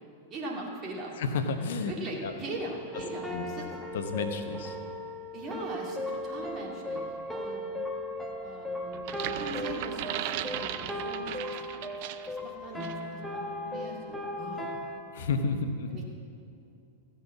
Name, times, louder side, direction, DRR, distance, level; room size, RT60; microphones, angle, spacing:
voice 1, 0.3-1.1 1.9-3.7 5.3-7.6 8.4-11.6 12.3-14.7 15.9-16.0, right 2 dB, 30° right, -2 dB, 2.4 m, -40 dB
voice 2, 1.2-1.9 2.2-2.3 3.3-3.4 3.9-4.8 15.1-16.0, left 4 dB, 60° left, 7 dB, 0.8 m, -31 dB
sound 1, 2.9-15.0, left 1 dB, ahead, 1.0 m, -37 dB
sound 2, 8.9-12.4 12.8-13.0, right 12 dB, 50° right, 0.4 m, -37 dB
15.0 x 5.6 x 7.2 m, 2.5 s
figure-of-eight pair, 95°, 0 cm